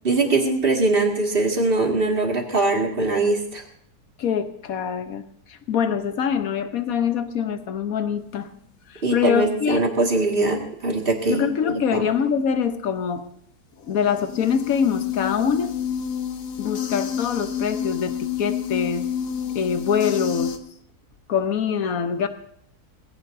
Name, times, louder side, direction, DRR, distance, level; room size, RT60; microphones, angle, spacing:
voice 1, 0.0-3.6 9.0-11.5 11.9-12.1, right 2 dB, 35° right, 1 dB, 2.3 m, -22 dB
voice 2, 4.2-8.5 8.9-9.8 11.3-13.3 13.9-15.8 16.6-19.1 19.5-20.6 21.3-22.3, left 7 dB, 65° left, 9 dB, 1.4 m, -24 dB
sound 1, 13.9-20.6, left 9 dB, 85° left, 1.5 m, -29 dB
21.0 x 15.5 x 2.7 m, 0.69 s
omnidirectional pair, 1.7 m